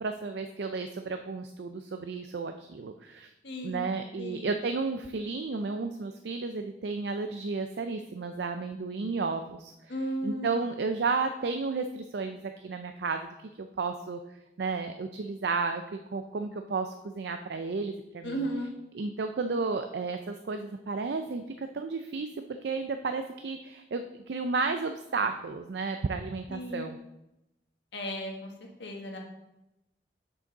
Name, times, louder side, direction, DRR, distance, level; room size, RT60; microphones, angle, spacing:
voice 1, 0.0-3.3 3.6-10.0 10.2-13.3 13.6-14.2 14.6-18.5 18.9-22.3 22.6-27.0, right 4 dB, 65° right, 7 dB, 0.4 m, -33 dB
voice 2, 3.4-3.9 4.2-4.5 9.9-10.6 18.2-18.7 26.5-26.9 27.9-28.5 28.8-29.2, equal, 75° left, 1 dB, 1.5 m, -35 dB
7.7 x 6.3 x 3.9 m, 0.92 s
head